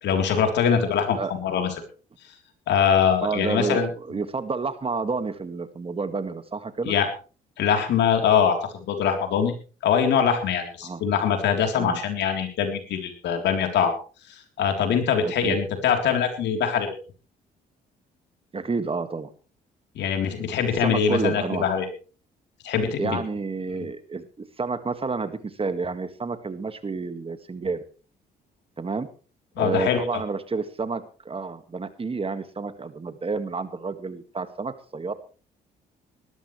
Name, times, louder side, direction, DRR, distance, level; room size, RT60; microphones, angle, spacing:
voice 1, 0.0-1.7 2.7-3.9 6.9-7.1 7.6-9.5 9.8-13.9 14.3-17.0 20.0-21.9 22.6-23.2 23.8-23.9 29.6-30.2, left 7 dB, 75° left, 5 dB, 3.6 m, -23 dB
voice 2, 3.2-3.8 4.1-6.9 10.8-11.0 11.8-12.0 15.2-15.6 18.5-19.3 20.8-21.7 23.0-27.8 28.8-29.1 29.6-35.1, right 4 dB, 30° right, 10 dB, 1.9 m, -30 dB
19.5 x 13.5 x 3.3 m, 0.37 s
supercardioid pair, 65°, 18 cm